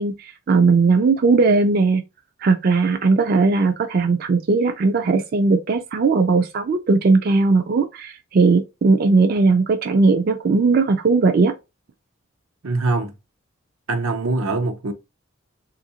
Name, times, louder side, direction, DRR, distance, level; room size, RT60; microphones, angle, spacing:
voice 1, 0.0-2.0 2.4-11.5, right 4 dB, 45° right, 0.4 m, -18 dB
voice 2, 12.6-13.1 13.9-14.9, right 3 dB, 85° right, 0.7 m, -23 dB
3.4 x 2.5 x 2.8 m
head